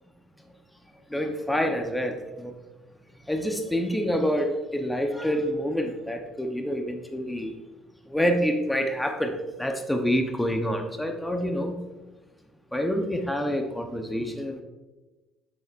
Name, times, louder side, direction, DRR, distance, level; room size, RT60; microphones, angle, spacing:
voice 1, 1.1-2.5 3.3-7.5 8.1-11.8 12.7-14.6, equal, 5° left, 4 dB, 0.8 m, -27 dB
7.8 x 6.8 x 2.5 m, 1.1 s
cardioid pair, 100°, 0 cm